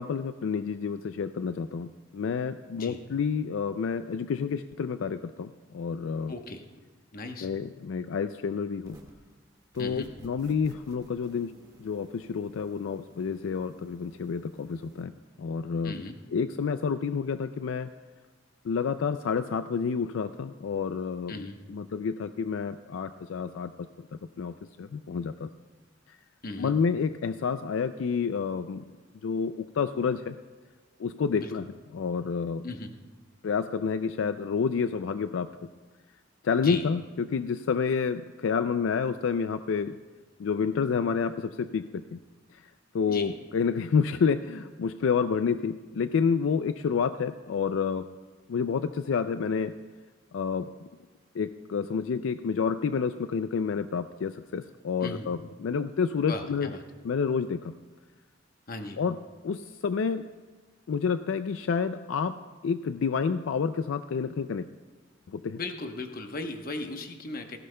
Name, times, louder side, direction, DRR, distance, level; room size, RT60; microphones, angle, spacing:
voice 1, 0.0-6.3 7.4-9.0 9.7-11.5 11.8-15.1 15.4-16.0 16.3-17.9 18.6-21.4 21.7-25.5 26.1-26.2 26.6-28.9 29.2-30.4 31.0-31.7 31.9-32.6 33.4-35.7 36.4-40.0 40.4-42.2 42.5-42.6 42.9-48.0 48.5-49.7 50.3-50.9 51.3-56.7 57.0-57.7 59.0-59.2 59.4-60.3 60.9-62.4 62.6-64.7 65.3-65.6, left 6 dB, 80° left, 11 dB, 0.4 m, -29 dB
voice 2, 6.3-6.6 7.1-7.5 9.8-10.2 15.8-16.2 21.3-21.6 26.4-26.7 31.4-31.6 32.6-32.9 36.6-36.9 43.1-43.3 55.0-55.3 56.3-56.8 58.7-59.0 65.5-67.6, left 2 dB, 50° left, 5 dB, 1.0 m, -37 dB
sound 1, 8.8-9.3 9.7-15.0, equal, 20° right, 1.7 m, -55 dB
17.5 x 15.5 x 2.2 m, 1.3 s
head